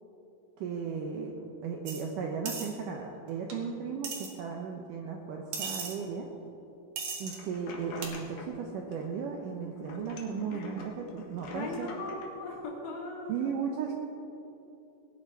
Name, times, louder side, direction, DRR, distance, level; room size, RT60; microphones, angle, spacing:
voice 1, 0.6-6.3 7.2-11.9 13.3-13.9, right 6 dB, 75° right, 1 dB, 2.0 m, -36 dB
sound 1, 1.9-2.0 2.5-2.7 3.5-3.6 4.0-4.3 5.5-5.9 7.0-7.4 8.0-8.1, right 5 dB, 55° right, 3.0 m, -36 dB
sound 2, 7.3-8.6 8.9-9.5 9.8-12.3, left 3 dB, 55° left, 2.6 m, -47 dB
voice 2, 10.5-10.9 11.5-13.9, left 2 dB, 80° left, -2 dB, 4.4 m, -39 dB
19.5 x 10.0 x 4.8 m, 2.9 s
omnidirectional pair, 4.8 m